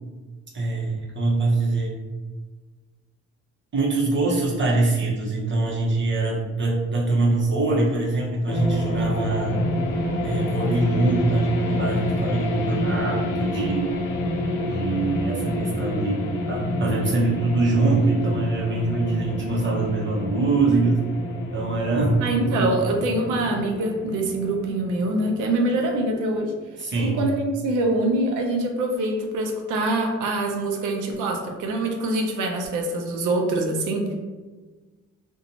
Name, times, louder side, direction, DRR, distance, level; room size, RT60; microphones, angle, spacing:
voice 1, 0.5-1.9 3.7-9.6 10.2-14.0 14.6-21.0 21.5-22.7 26.8-27.2, right 3 dB, 40° right, -4 dB, 0.7 m, -23 dB
sound 1, 8.5-26.2, left 1 dB, 90° left, 0.5 m, -28 dB
voice 2, 22.2-26.5 27.2-34.1, right 2 dB, 90° right, 3 dB, 0.5 m, -24 dB
2.5 x 2.2 x 2.8 m, 1.3 s
cardioid pair, 90°, 30 cm